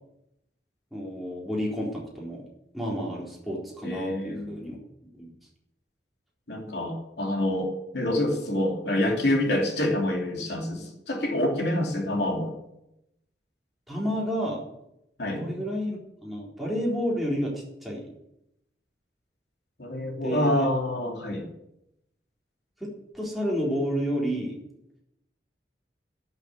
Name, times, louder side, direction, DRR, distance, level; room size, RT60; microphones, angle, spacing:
voice 1, 0.9-2.4 2.7-4.8 5.2-5.3 13.9-14.6 15.4-18.1 20.2-20.7 22.8-24.6, equal, ahead, -5 dB, 3.9 m, -30 dB
voice 2, 3.8-4.6 6.5-12.5 15.2-15.4 19.8-21.4, left 1 dB, 70° left, 1 dB, 3.0 m, -27 dB
11.5 x 7.7 x 9.6 m, 0.82 s
head